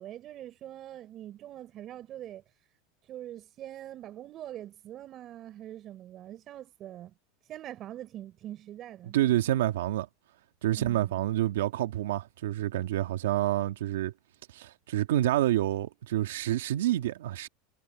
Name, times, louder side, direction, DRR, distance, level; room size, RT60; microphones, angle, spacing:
voice 1, 0.0-2.4 3.1-7.1 7.5-9.2 10.7-11.2, right 12 dB, 40° right, 5.5 m, -43 dB
voice 2, 9.0-10.1 10.6-14.1 14.5-17.5, right 13 dB, 90° right, 2.0 m, -28 dB
supercardioid pair, 130°, 0 cm